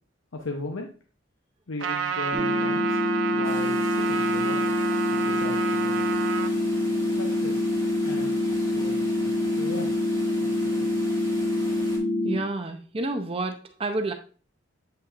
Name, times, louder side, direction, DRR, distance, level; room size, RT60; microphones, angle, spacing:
voice 1, 0.3-0.9 1.7-3.0 3.3-4.7 5.1-6.2 7.2-7.6 8.0-9.9 10.4-10.9, left 2 dB, 85° left, 0.8 m, -37 dB
Trumpet, 1.8-6.5, right 8 dB, 75° right, 0.7 m, -30 dB
sound 1, 2.3-12.3, left 1 dB, 5° left, 2.1 m, -26 dB
sound 2, 3.4-12.0, equal, 20° left, 2.8 m, -43 dB
voice 2, 12.2-14.1, right 2 dB, 30° right, 0.5 m, -29 dB
8.0 x 5.6 x 2.5 m
head